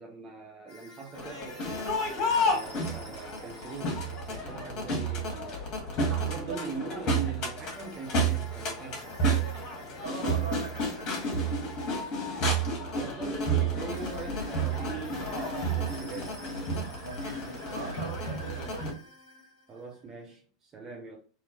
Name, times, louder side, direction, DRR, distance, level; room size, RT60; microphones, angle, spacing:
voice 1, 0.0-2.0 2.4-4.0 4.3-5.6 6.0-9.1 13.0-16.3 19.7-21.2, right 4 dB, 25° right, 0.7 m, -41 dB
sound 1, 0.7-4.9 7.7-12.9 13.9-20.3, left 1 dB, 85° right, 1.3 m, -51 dB
Crowd, 1.1-18.9, right 2 dB, 35° left, 1.3 m, -31 dB
voice 2, 6.2-6.6 10.0-11.9 16.9-18.9 20.7-21.0, right 3 dB, 65° right, 1.6 m, -41 dB
2.9 x 2.8 x 2.6 m
figure-of-eight pair, 85°, 2 cm